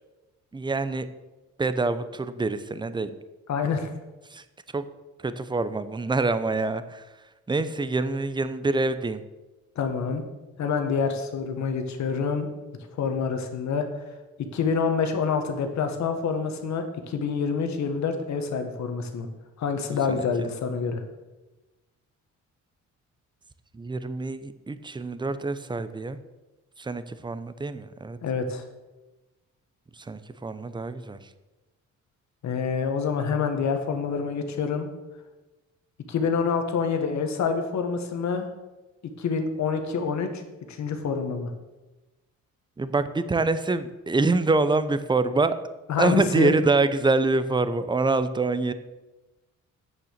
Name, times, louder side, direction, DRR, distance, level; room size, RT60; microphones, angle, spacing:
voice 1, 0.5-1.1 1.6-3.1 4.3-4.4 4.7-4.8 5.2-7.0 7.5-9.2 20.1-20.5 23.7-26.2 26.8-28.2 30.0-31.2 42.8-45.6 46.0-48.7, right 3 dB, 15° right, 13 dB, 0.7 m, -25 dB
voice 2, 3.5-3.9 9.7-10.2 10.6-12.5 13.0-13.9 14.5-19.3 19.6-21.0 28.2-28.6 32.4-34.9 36.1-38.5 39.2-40.4 40.7-41.5 45.9-46.5, left 5 dB, 65° left, 6 dB, 1.6 m, -27 dB
9.0 x 6.7 x 6.6 m, 1.1 s
cardioid pair, 90°, 30 cm